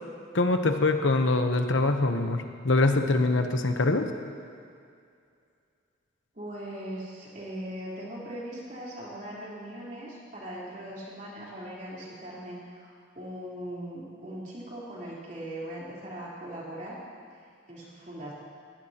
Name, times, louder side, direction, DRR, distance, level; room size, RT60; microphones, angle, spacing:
voice 1, 0.3-4.1, left 2 dB, 75° left, 6 dB, 1.0 m, -24 dB
voice 2, 6.3-17.0 17.7-18.3, right 1 dB, 40° right, -6 dB, 3.9 m, -40 dB
21.0 x 16.0 x 3.0 m, 2.3 s
head